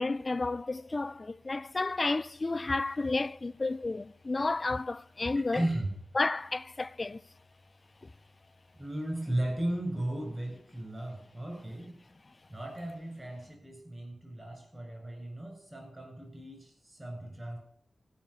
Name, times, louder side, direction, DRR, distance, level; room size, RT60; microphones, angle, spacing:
voice 1, 0.0-5.7 6.1-7.2, left 3 dB, 40° left, 0.4 m, -31 dB
voice 2, 5.3-5.9 8.8-11.9 12.5-17.6, right 1 dB, 30° right, 7.4 m, -36 dB
16.0 x 5.7 x 8.5 m
cardioid pair, 55°, 0 cm